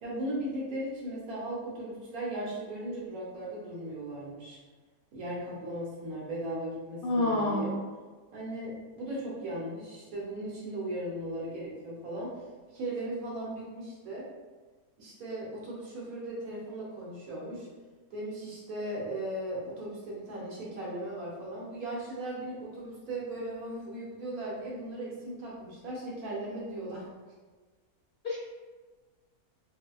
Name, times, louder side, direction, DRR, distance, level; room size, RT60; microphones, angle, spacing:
voice 1, 0.0-4.6 5.1-7.8 8.3-14.3 15.0-17.7 18.1-27.1, right 1 dB, 75° right, -5 dB, 1.4 m, -37 dB
voice 2, 7.0-7.7 28.2-28.4, left 2 dB, 70° left, -5 dB, 0.5 m, -27 dB
3.5 x 2.7 x 2.3 m, 1.4 s
omnidirectional pair, 1.6 m